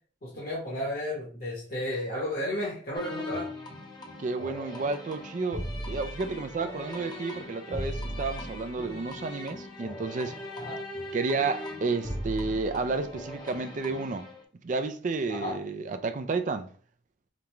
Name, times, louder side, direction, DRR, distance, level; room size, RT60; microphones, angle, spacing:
voice 1, 0.2-3.5 10.6-10.8 15.3-15.6, left 1 dB, 50° left, 1.1 m, -33 dB
sound 1, 2.9-14.4, left 1 dB, 25° left, 0.7 m, -38 dB
voice 2, 4.2-10.4 11.1-14.3 14.6-16.7, right 3 dB, 40° right, 0.4 m, -31 dB
5.0 x 2.2 x 3.0 m
head